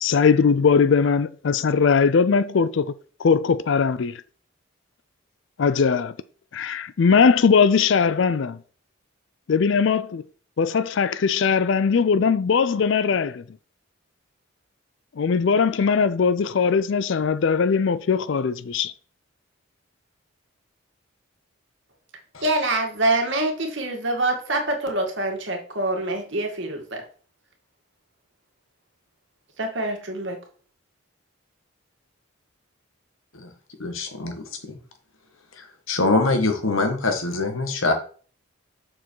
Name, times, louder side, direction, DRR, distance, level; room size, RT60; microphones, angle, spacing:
voice 1, 0.0-2.9 3.2-4.2 5.6-6.1 6.5-8.6 9.5-10.2 10.6-13.4 15.2-18.9, left 5 dB, 60° left, 0.4 m, -20 dB
voice 2, 22.4-27.0 29.6-30.4, right 2 dB, 55° right, 2.1 m, -25 dB
voice 3, 33.8-34.3 34.7-34.8 35.6-37.9, left 2 dB, 75° left, 1.7 m, -23 dB
7.0 x 6.2 x 4.6 m
head